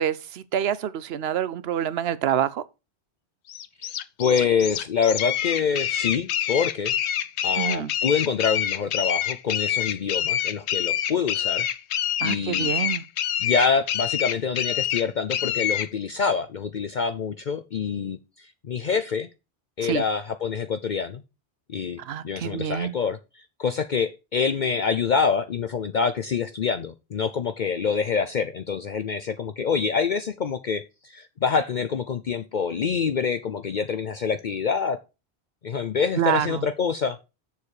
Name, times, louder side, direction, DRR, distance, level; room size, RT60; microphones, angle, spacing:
voice 1, 0.0-2.6 7.6-7.9 12.2-13.0 19.8-20.0 22.0-22.9 36.1-36.7, right 9 dB, 70° right, 0.9 m, -27 dB
sound 1, 3.5-15.9, left 10 dB, 90° left, 0.9 m, -26 dB
voice 2, 3.8-6.9 7.4-11.7 12.2-12.7 13.4-19.3 19.8-21.2 21.7-35.0 35.6-37.2, left 6 dB, 50° left, 0.7 m, -26 dB
7.2 x 6.6 x 4.7 m
omnidirectional pair, 1.1 m